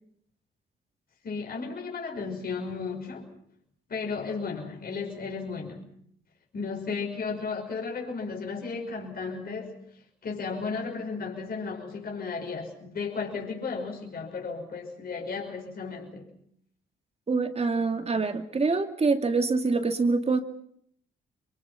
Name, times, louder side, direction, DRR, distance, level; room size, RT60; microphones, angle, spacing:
voice 1, 1.2-3.3 3.9-5.9 6.5-9.8 10.2-16.3, left 4 dB, 50° left, 1 dB, 5.8 m, -34 dB
voice 2, 17.3-20.4, right 4 dB, 30° right, 7 dB, 2.5 m, -25 dB
26.5 x 24.0 x 5.9 m, 0.68 s
cardioid pair, 90°, 20 cm